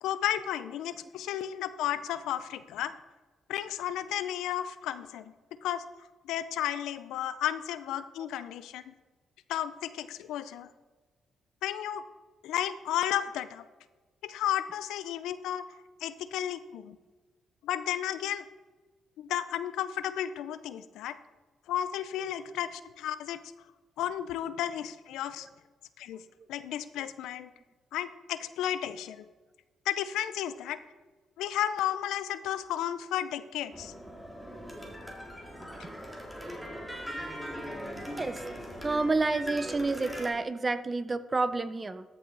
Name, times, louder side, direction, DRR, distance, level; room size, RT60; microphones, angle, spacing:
voice 1, 0.0-2.9 3.5-5.3 5.6-5.8 6.2-8.9 9.5-10.7 11.6-12.0 12.4-13.6 14.2-15.6 16.0-17.0 17.6-18.5 19.2-21.2 21.7-23.4 24.0-25.5 26.0-26.2 26.5-27.5 27.9-29.3 29.9-30.8 31.4-33.9, left 11 dB, 85° left, 13 dB, 0.5 m, -33 dB
sound 1, 33.7-40.3, equal, ahead, 2.0 m, -40 dB
voice 2, 38.8-42.0, right 3 dB, 25° right, 13 dB, 0.6 m, -29 dB
13.0 x 5.6 x 4.0 m, 1.3 s
cardioid pair, 90°, 0 cm